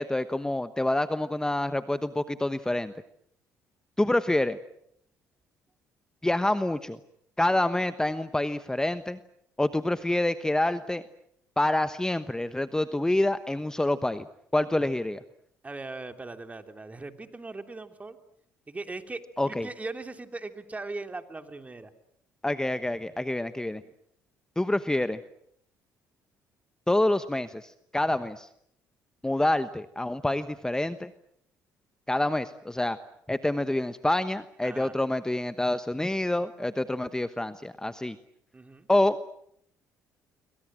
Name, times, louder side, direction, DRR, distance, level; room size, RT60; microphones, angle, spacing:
voice 1, 0.0-2.9 4.0-4.6 6.2-7.0 7.4-9.2 9.6-11.0 11.6-14.3 14.5-15.2 19.4-19.7 22.4-23.8 24.6-25.2 26.9-28.5 29.2-31.1 32.1-33.0 33.3-38.2 38.9-39.2, left 1 dB, 10° left, 12 dB, 1.1 m, -27 dB
voice 2, 15.6-18.2 18.7-21.9 34.6-34.9 38.5-38.9, right 3 dB, 20° right, 7 dB, 3.1 m, -39 dB
27.5 x 24.0 x 7.6 m, 0.71 s
supercardioid pair, 70°, 6 cm